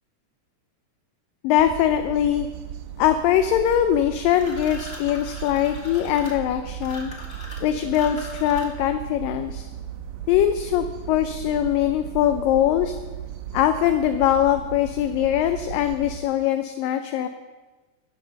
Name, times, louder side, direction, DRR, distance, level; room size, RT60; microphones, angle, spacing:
voice 1, 1.4-2.5 3.0-7.1 7.6-9.7 10.3-13.0 13.5-17.3, left 11 dB, 80° left, 8 dB, 2.1 m, -22 dB
sound 1, 1.6-16.2, right 10 dB, 75° right, 2.3 m, -36 dB
sound 2, 4.3-8.9, left 1 dB, 25° left, 1.6 m, -41 dB
11.0 x 10.5 x 6.4 m, 1.3 s
omnidirectional pair, 4.2 m